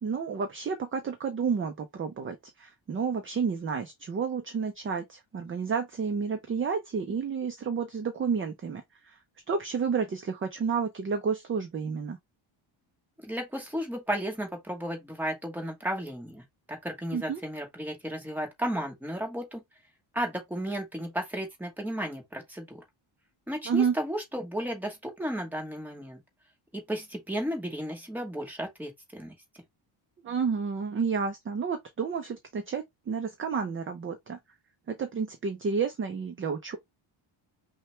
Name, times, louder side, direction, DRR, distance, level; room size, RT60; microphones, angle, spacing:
voice 1, 0.0-9.2 9.5-12.2 17.1-17.4 23.7-23.9 30.2-34.4 34.9-36.8, right 6 dB, 30° right, 0.4 m, -30 dB
voice 2, 13.2-19.6 20.1-22.8 23.5-26.2 26.7-29.3, equal, 5° right, 1.1 m, -34 dB
5.6 x 2.2 x 3.2 m
wide cardioid pair, 175°, 49 cm